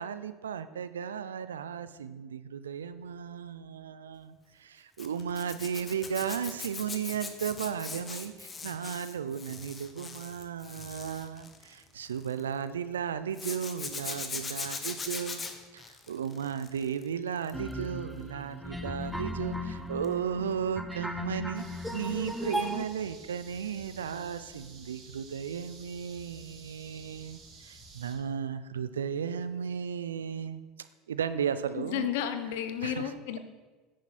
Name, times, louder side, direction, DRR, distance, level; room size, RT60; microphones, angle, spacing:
voice 1, 0.0-15.4 15.7-21.6 21.9-32.1 32.8-33.1, right 7 dB, 90° right, 13 dB, 0.5 m, -35 dB
Zipper (clothing), 5.0-12.4 13.3-17.0 17.4-17.7 20.0-20.2 20.5-20.6, left 4 dB, 25° left, 1.3 m, -40 dB
sound 1, 17.5-22.9, left 1 dB, ahead, 1.0 m, -36 dB
sound 2, 21.5-28.1, right 3 dB, 50° right, 3.2 m, -52 dB
voice 2, 31.7-33.4, left 9 dB, 70° left, 9 dB, 1.0 m, -32 dB
10.0 x 9.4 x 4.3 m, 1.3 s
hypercardioid pair, 85°, 0 cm